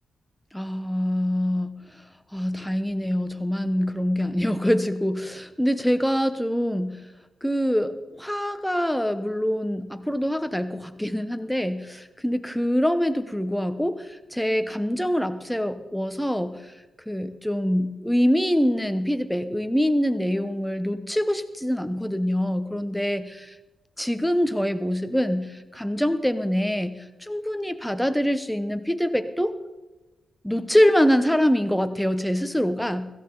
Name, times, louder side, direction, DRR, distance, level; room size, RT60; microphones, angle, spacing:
voice 1, 0.5-1.7 2.3-7.0 7.4-16.5 17.1-23.2 24.0-26.9 27.2-29.5 30.4-33.1, equal, 5° left, 9 dB, 1.1 m, -24 dB
16.5 x 14.5 x 4.0 m, 1.1 s
cardioid pair, 85°, 0 cm